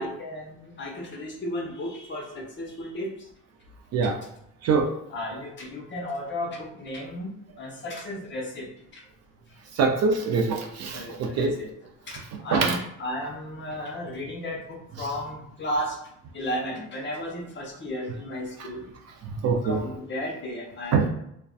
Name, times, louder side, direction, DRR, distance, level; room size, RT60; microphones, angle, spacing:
voice 1, 0.0-3.3 5.1-7.3 7.6-8.7 8.9-9.0 9.5-9.6 10.9-11.7 12.0-16.0 16.3-18.9 19.6-21.1, left 1 dB, 30° left, -1 dB, 0.7 m, -34 dB
voice 2, 4.6-4.9 9.7-11.6 12.5-12.8 19.2-19.8 20.9-21.0, right 5 dB, 45° right, 2 dB, 0.4 m, -24 dB
2.5 x 2.1 x 2.3 m, 0.76 s
cardioid pair, 105°, 37 cm